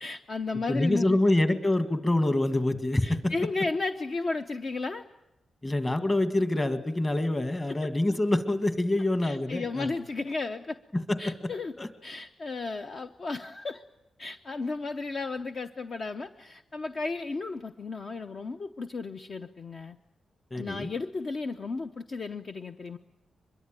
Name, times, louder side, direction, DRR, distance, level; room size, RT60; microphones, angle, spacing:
voice 1, 0.0-1.3 3.0-5.0 7.7-7.9 9.2-10.8 11.2-11.7 12.0-13.8 14.2-20.0 20.5-23.0, left 3 dB, 40° left, 8 dB, 0.8 m, -34 dB
voice 2, 0.7-3.3 5.6-9.9 10.9-11.5 11.8-11.9 20.5-20.9, left 1 dB, 20° left, 10 dB, 1.9 m, -26 dB
23.5 x 22.5 x 9.1 m, 0.90 s
wide cardioid pair, 125°, 0 cm